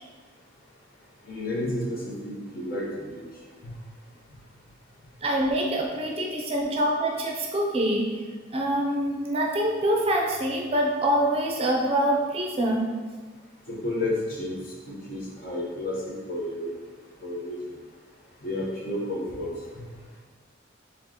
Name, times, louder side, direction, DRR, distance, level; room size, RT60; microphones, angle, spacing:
voice 1, 1.3-3.2 13.7-14.6 14.9-16.7 17.2-17.6 18.4-19.5, left 1 dB, 50° left, -5 dB, 1.1 m, -31 dB
voice 2, 5.2-8.1 8.5-12.9, right 1 dB, 30° right, -1 dB, 0.5 m, -25 dB
4.4 x 3.5 x 3.0 m, 1.4 s
head